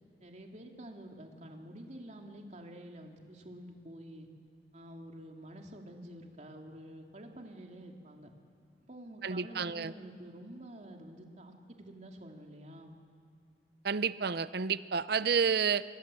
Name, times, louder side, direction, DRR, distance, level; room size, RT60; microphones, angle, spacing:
voice 1, 0.2-4.3 4.7-8.3 8.8-13.0, right 1 dB, 40° right, 2 dB, 2.8 m, -48 dB
voice 2, 9.2-9.9 13.8-15.8, right 6 dB, 60° right, 15 dB, 0.7 m, -30 dB
28.0 x 23.5 x 7.8 m, 2.1 s
head